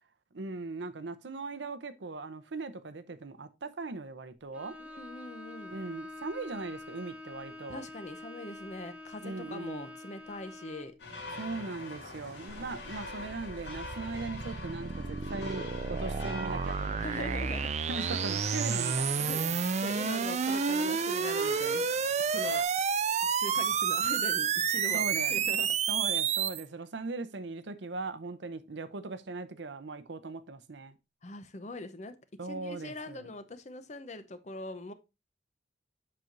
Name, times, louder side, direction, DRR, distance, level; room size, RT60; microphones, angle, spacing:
voice 1, 0.3-4.7 5.7-7.8 9.2-9.9 11.4-17.4 17.9-19.6 24.9-25.3 25.9-30.9 32.4-33.3, right 3 dB, 70° right, 0.7 m, -39 dB
Bowed string instrument, 4.5-11.0, left 2 dB, 5° right, 0.9 m, -46 dB
voice 2, 4.8-5.7 7.7-10.9 17.0-17.9 19.2-19.4 19.8-21.8 22.2-22.7 23.2-25.8 31.2-34.9, left 2 dB, 35° left, 0.6 m, -42 dB
sound 1, 11.0-22.6, left 2 dB, 70° left, 2.3 m, -44 dB
sound 2, 12.5-26.6, right 6 dB, 35° right, 0.4 m, -30 dB
7.5 x 6.0 x 2.6 m
head